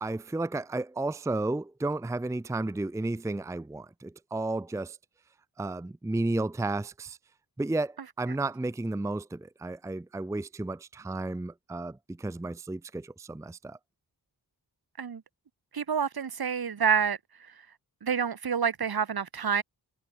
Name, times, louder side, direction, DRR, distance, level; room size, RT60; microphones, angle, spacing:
voice 1, 0.0-5.0 5.6-7.2 7.6-13.8, right 2 dB, 5° right, 0.6 m, -32 dB
voice 2, 15.7-17.2 18.0-19.6, right 6 dB, 60° right, 1.9 m, -28 dB
cardioid pair, 70°, 41 cm